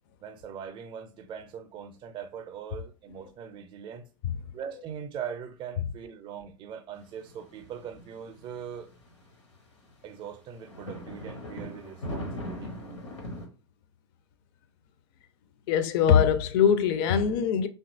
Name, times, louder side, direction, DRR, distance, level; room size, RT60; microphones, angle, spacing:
voice 1, 0.2-4.1 4.5-8.9 10.0-12.8, right 8 dB, 35° right, 0.5 m, -41 dB
sound 1, 7.0-9.3 9.9-10.0 10.6-13.5, equal, 80° left, 0.9 m, -39 dB
voice 2, 15.7-17.7, left 8 dB, 50° left, 0.4 m, -22 dB
2.8 x 2.3 x 2.6 m
figure-of-eight pair, 90°, 15 cm